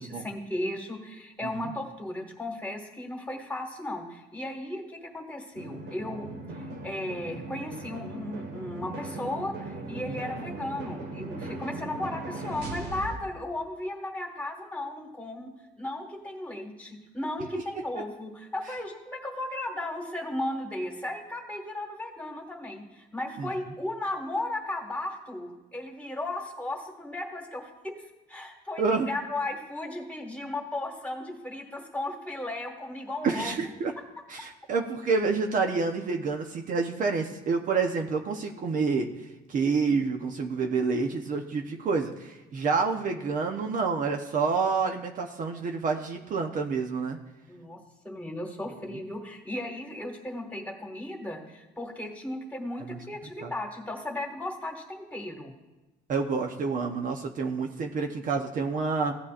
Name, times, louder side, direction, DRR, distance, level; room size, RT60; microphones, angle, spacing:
voice 1, 0.0-6.3 6.8-15.5 15.8-28.0 28.3-33.5 47.5-47.8 48.0-55.5, left 1 dB, 10° left, 1 dB, 1.9 m, -35 dB
sound 1, 5.5-13.2, right 2 dB, 85° right, 1.5 m, -38 dB
voice 2, 28.8-29.1 33.2-33.9 34.3-39.1 39.5-47.2 52.9-53.0 53.4-53.5 56.1-59.1, right 4 dB, 50° right, 4 dB, 0.9 m, -28 dB
15.5 x 8.3 x 2.5 m, 1.1 s
cardioid pair, 110°, 17 cm